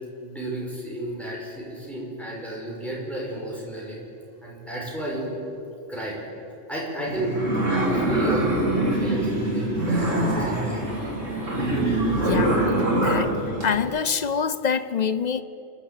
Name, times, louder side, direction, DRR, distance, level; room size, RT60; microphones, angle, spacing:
voice 1, 0.2-4.0 4.4-5.3 5.9-6.2 6.7-7.4 7.7-10.1 10.4-10.8, right 1 dB, ahead, 5.5 m, -32 dB
sound 1, 7.1-13.8, right 1 dB, 80° right, 3.8 m, -24 dB
voice 2, 11.9-12.6 12.9-15.4, left 6 dB, 45° left, 0.7 m, -26 dB
28.5 x 11.5 x 8.4 m
omnidirectional pair, 1.3 m